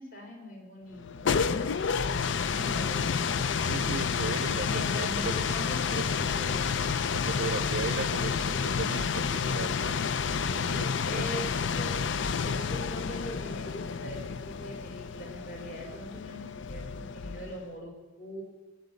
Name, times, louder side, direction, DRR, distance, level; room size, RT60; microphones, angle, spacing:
voice 1, 0.0-1.5 2.4-3.5 4.3-6.5 11.0-12.0 12.4-18.4, equal, 50° left, 1 dB, 4.5 m, -42 dB
sound 1, 1.0-17.7, left 6 dB, 85° left, 0.5 m, -30 dB
voice 2, 3.7-6.1 7.1-10.2 10.5-11.3, right 4 dB, 65° right, 15 dB, 0.5 m, -37 dB
18.0 x 7.7 x 8.3 m, 1.2 s
head